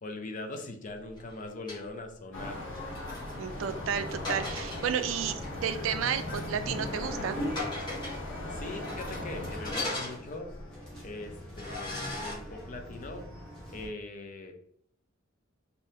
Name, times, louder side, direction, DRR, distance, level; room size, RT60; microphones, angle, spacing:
voice 1, 0.0-2.6 8.5-10.5 11.0-13.2 13.7-14.5, left 2 dB, 40° left, 4 dB, 0.5 m, -41 dB
sound 1, 1.1-1.8 2.7-5.1 5.4-5.5 6.1-6.6 6.9-7.0 7.3-8.3 8.8-10.6 11.1-11.2 11.5-12.3, left 2 dB, 20° left, 1.3 m, -39 dB
sound 2, 2.3-9.7, left 1 dB, 65° left, 0.9 m, -38 dB
voice 2, 3.4-7.4, right 8 dB, 70° right, 11 dB, 0.3 m, -32 dB
sound 3, 3.5-13.9, left 1 dB, 5° left, 1.1 m, -45 dB
3.3 x 2.7 x 2.7 m, 0.65 s
head